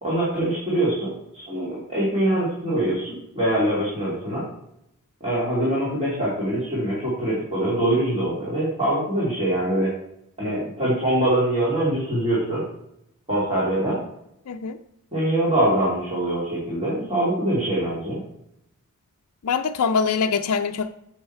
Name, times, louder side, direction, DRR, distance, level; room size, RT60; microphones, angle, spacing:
voice 1, 0.0-4.4 5.2-9.9 10.4-12.6 13.3-14.0 15.1-18.2, right 1 dB, 30° right, -7 dB, 2.6 m, -23 dB
voice 2, 14.5-14.8 19.4-20.9, left 5 dB, 90° left, 5 dB, 0.5 m, -23 dB
8.9 x 7.3 x 4.4 m, 0.80 s
head